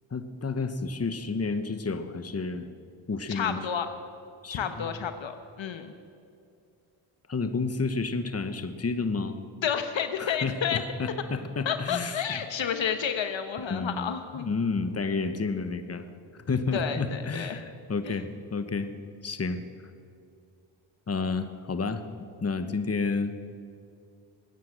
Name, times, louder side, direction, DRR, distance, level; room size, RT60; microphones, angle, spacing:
voice 1, 0.1-2.7 3.1-3.6 4.4-4.9 7.3-9.4 10.2-12.2 13.7-16.1 16.5-18.9 19.2-19.6 21.1-22.0 22.4-23.3, left 4 dB, 30° left, 9 dB, 1.2 m, -30 dB
voice 2, 3.3-3.9 4.5-5.9 9.6-10.8 11.6-14.5 16.7-17.6 18.0-18.2, left 8 dB, 65° left, 9 dB, 1.1 m, -30 dB
22.0 x 9.5 x 6.7 m, 2.4 s
cardioid pair, 60°, 49 cm